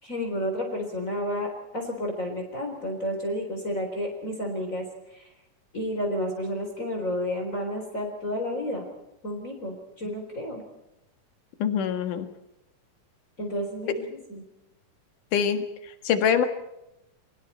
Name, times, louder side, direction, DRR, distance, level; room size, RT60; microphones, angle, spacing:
voice 1, 0.0-4.8 5.1-5.3 5.7-8.9 9.2-10.6 13.4-14.4, equal, 25° left, 1 dB, 4.2 m, -31 dB
voice 2, 11.6-12.3 15.3-15.6 16.0-16.5, left 8 dB, 75° left, 8 dB, 3.1 m, -23 dB
29.5 x 23.5 x 4.4 m, 0.89 s
omnidirectional pair, 3.8 m